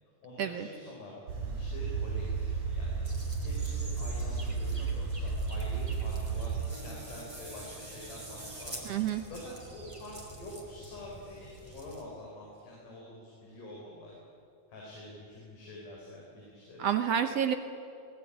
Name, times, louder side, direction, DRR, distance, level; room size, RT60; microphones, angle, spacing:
voice 1, 0.2-3.1 3.4-14.2 14.7-16.8, left 1 dB, 85° left, -3 dB, 5.9 m, -46 dB
sound 1, 1.3-6.7, right 5 dB, 85° right, 5.2 m, -33 dB
sound 2, 3.0-12.0, right 1 dB, 10° right, 2.8 m, -47 dB
voice 2, 8.9-9.2 16.8-17.6, right 9 dB, 65° right, 8 dB, 1.7 m, -29 dB
21.0 x 19.0 x 9.9 m, 2.5 s
omnidirectional pair, 3.6 m